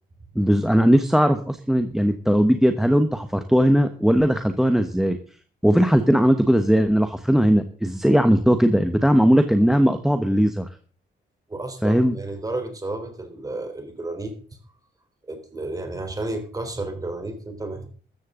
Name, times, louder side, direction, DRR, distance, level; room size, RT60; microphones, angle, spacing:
voice 1, 0.3-5.2 5.6-10.7 11.8-12.1, equal, ahead, 8 dB, 1.1 m, -18 dB
voice 2, 11.5-14.3 15.2-17.9, right 2 dB, 20° right, 6 dB, 3.7 m, -32 dB
14.0 x 14.0 x 3.8 m, 0.41 s
cardioid pair, 145°, 19 cm